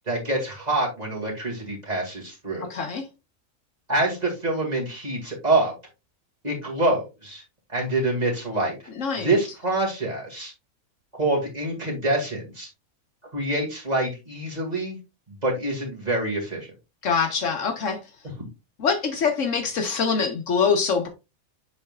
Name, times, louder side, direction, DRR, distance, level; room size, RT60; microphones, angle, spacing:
voice 1, 0.1-2.7 3.9-5.7 6.4-7.4 7.7-8.8 9.2-10.5 11.1-12.7 13.3-15.0 15.3-16.7 18.4-18.5, right 2 dB, 30° right, 2.2 m, -26 dB
voice 2, 2.6-3.1 9.0-9.3 17.0-18.0 18.8-21.1, left 5 dB, 60° left, 1.2 m, -24 dB
7.5 x 5.5 x 2.4 m
omnidirectional pair, 1.5 m